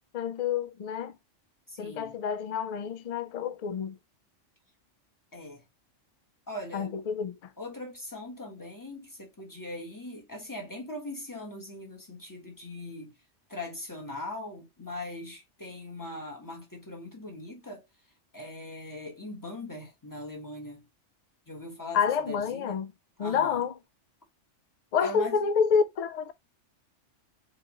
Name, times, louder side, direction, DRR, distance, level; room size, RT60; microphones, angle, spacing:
voice 1, 0.1-1.1 1.8-4.0 6.7-7.4 21.9-22.9 23.2-23.7 24.9-26.3, left 6 dB, 70° left, 0.3 m, -28 dB
voice 2, 1.7-2.2 5.3-5.6 6.5-7.0 7.6-13.1 13.5-17.9 18.3-20.8 21.5-22.8 23.2-23.6 25.0-25.4, left 2 dB, 15° left, 1.3 m, -40 dB
4.6 x 2.9 x 3.0 m
omnidirectional pair, 1.2 m